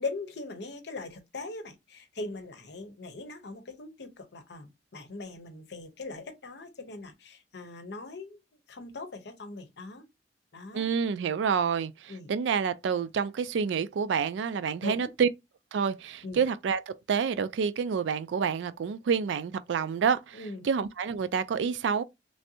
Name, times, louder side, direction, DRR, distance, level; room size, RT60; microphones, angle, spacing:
voice 1, 0.0-8.4 8.7-10.0 10.5-10.9 12.1-12.3 14.8-15.1 16.2-16.4 20.3-20.7, left 3 dB, 65° left, 0.7 m, -40 dB
voice 2, 10.7-15.3 15.7-22.0, right 6 dB, 80° right, 0.3 m, -28 dB
3.2 x 2.6 x 2.7 m
head